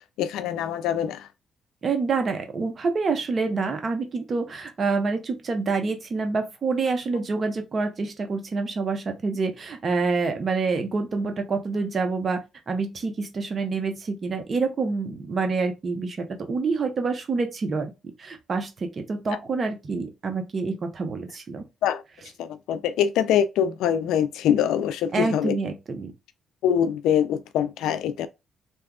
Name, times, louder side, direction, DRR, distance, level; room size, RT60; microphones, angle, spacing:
voice 1, 0.2-1.3 21.8-22.0 22.4-25.6 26.6-28.3, left 9 dB, 90° left, 0.4 m, -24 dB
voice 2, 1.8-12.4 12.7-17.9 18.2-21.6 25.1-26.1, right 4 dB, 40° right, 0.8 m, -27 dB
2.7 x 2.3 x 3.5 m
cardioid pair, 90°, 0 cm